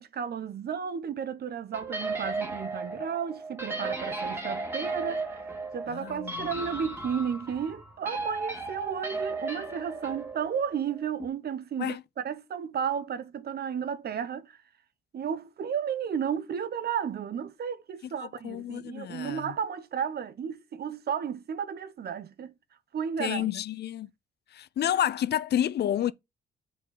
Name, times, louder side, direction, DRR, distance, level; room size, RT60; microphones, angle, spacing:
voice 1, 0.0-14.6 15.1-22.5 22.9-23.5, right 7 dB, 55° right, 0.9 m, -33 dB
sound 1, 1.7-11.3, right 3 dB, 10° right, 2.7 m, -35 dB
voice 2, 5.9-6.5 11.8-12.0 18.4-19.5 23.2-24.1 24.5-26.1, left 11 dB, 55° left, 0.5 m, -29 dB
8.2 x 4.6 x 3.9 m
cardioid pair, 90°, 20 cm